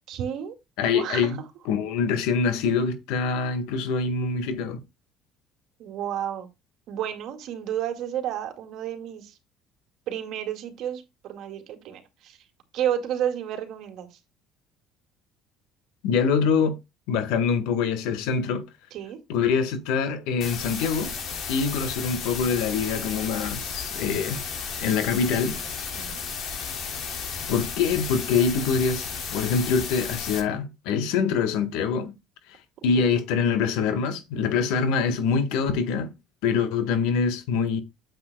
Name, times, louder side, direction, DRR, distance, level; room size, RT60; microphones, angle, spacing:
voice 1, 0.1-0.5 0.9-1.4 5.8-6.5 6.9-9.4 10.1-12.4 12.7-14.2 18.9-19.2 22.1-22.6 25.9-26.2 33.0-33.1, right 10 dB, 65° right, 2.1 m, -31 dB
voice 2, 0.8-1.4 1.6-4.8 16.0-16.8 17.1-18.6 19.3-21.1 21.5-24.4 24.8-25.6 27.5-32.1 32.8-36.1 36.4-37.8, left 5 dB, 85° left, 1.6 m, -24 dB
sound 1, 20.4-30.4, left 6 dB, 55° left, 3.3 m, -33 dB
9.5 x 7.6 x 2.3 m
cardioid pair, 110°, 0 cm